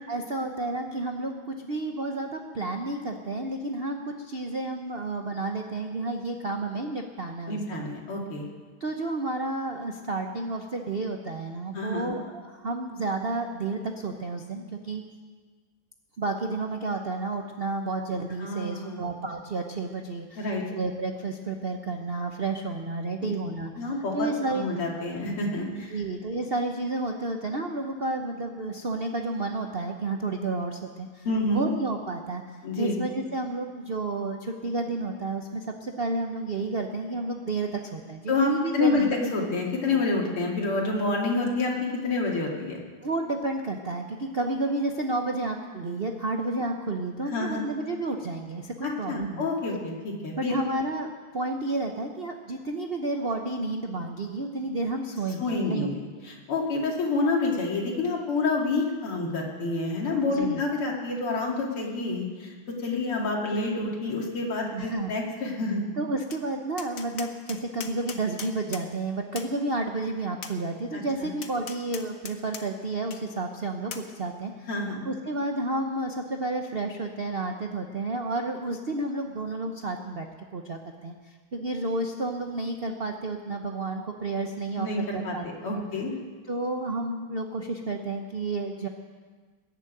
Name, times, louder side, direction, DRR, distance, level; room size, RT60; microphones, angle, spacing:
voice 1, 0.1-7.8 8.8-15.0 16.2-20.5 20.7-24.6 25.9-32.4 32.8-39.1 43.0-49.5 50.3-55.9 60.1-60.6 64.7-65.1 66.0-74.7 75.0-80.3 80.5-85.5 85.7-85.8 86.5-88.9, right 2 dB, 70° right, 3 dB, 0.5 m, -31 dB
voice 2, 7.5-8.4 11.7-12.1 18.4-19.1 20.4-20.6 23.2-23.3 23.8-26.0 31.2-31.6 32.6-33.0 38.3-42.8 47.3-47.6 48.8-50.6 55.4-62.5 62.8-65.8 70.9-71.3 74.7-75.0 84.7-85.4 85.6-86.1, left 3 dB, 85° left, -2 dB, 3.4 m, -28 dB
Tap, 66.3-66.4 66.8-68.9 69.4-69.5 70.4-70.6 71.4-72.6 73.1-73.2 73.9-74.1, left 6 dB, 50° left, 1.1 m, -39 dB
21.0 x 7.5 x 9.1 m, 1.5 s
omnidirectional pair, 2.4 m